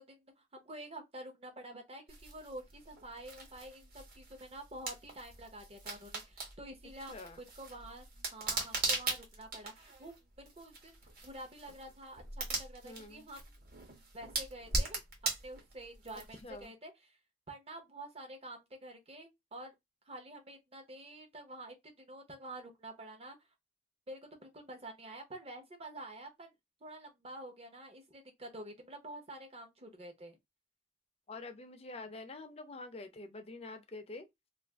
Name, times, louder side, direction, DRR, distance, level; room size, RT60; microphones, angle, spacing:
voice 1, 0.0-8.1 8.3-11.0 11.2-13.5 14.1-15.0 15.4-17.2 17.5-19.7 20.1-23.4 24.1-26.5 26.8-30.4, right 1 dB, 30° right, 0.8 m, -48 dB
sound 1, 2.1-16.6, right 2 dB, 50° right, 1.2 m, -40 dB
voice 2, 7.1-7.4 12.8-13.3 16.4-16.7 31.3-34.3, left 2 dB, 30° left, 0.6 m, -46 dB
2.5 x 2.4 x 3.4 m
head